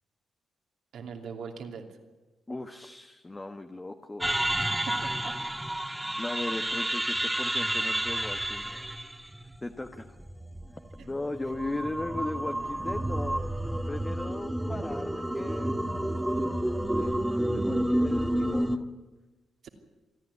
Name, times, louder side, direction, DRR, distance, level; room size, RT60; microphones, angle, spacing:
voice 1, 0.9-1.8 4.5-5.3 11.0-11.1 19.6-19.7, right 6 dB, 75° right, 3 dB, 2.8 m, -41 dB
voice 2, 2.5-4.3 6.2-8.9 9.6-10.1 11.0-13.5 13.9-15.7 16.9-18.9, left 2 dB, 20° left, 6 dB, 1.3 m, -37 dB
sound 1, 4.2-18.8, right 1 dB, 5° right, 1.5 m, -30 dB
27.5 x 10.5 x 9.8 m, 1.2 s
cardioid pair, 70°, 0 cm